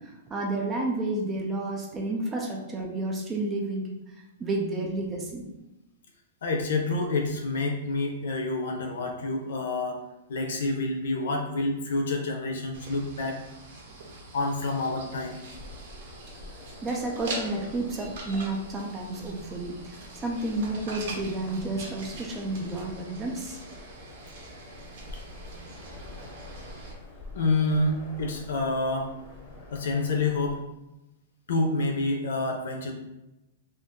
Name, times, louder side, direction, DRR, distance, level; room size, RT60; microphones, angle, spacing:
voice 1, 0.0-4.1 4.4-5.5 16.8-23.6, right 2 dB, 10° right, -1 dB, 0.4 m, -31 dB
voice 2, 6.4-10.0 10.3-13.4 14.3-15.4 27.3-29.1 29.7-30.6 31.5-32.9, left 2 dB, 65° left, 2 dB, 0.6 m, -28 dB
sound 1, 12.7-26.9, right 2 dB, 45° right, 0.7 m, -43 dB
sound 2, 15.4-30.6, left 2 dB, 30° left, 0.7 m, -47 dB
2.5 x 2.5 x 3.6 m, 0.94 s
supercardioid pair, 175°, 0 cm